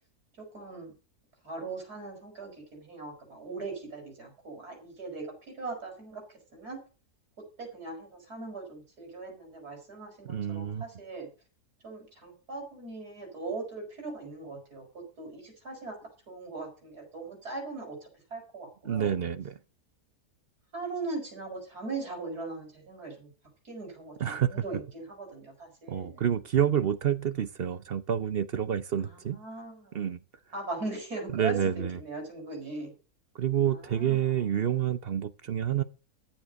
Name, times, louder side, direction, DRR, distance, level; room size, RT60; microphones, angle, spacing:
voice 1, 0.4-0.9 1.4-6.8 7.6-11.3 11.8-16.0 16.3-19.1 20.7-23.3 23.6-26.2 29.0-30.0 30.5-32.9 33.7-34.4, right 3 dB, 75° right, 6.3 m, -40 dB
voice 2, 10.2-10.8 18.8-19.6 24.2-24.6 25.9-29.4 29.9-30.2 31.3-32.0 33.3-35.8, right 9 dB, 50° right, 0.7 m, -28 dB
14.0 x 7.5 x 6.5 m
omnidirectional pair, 1.7 m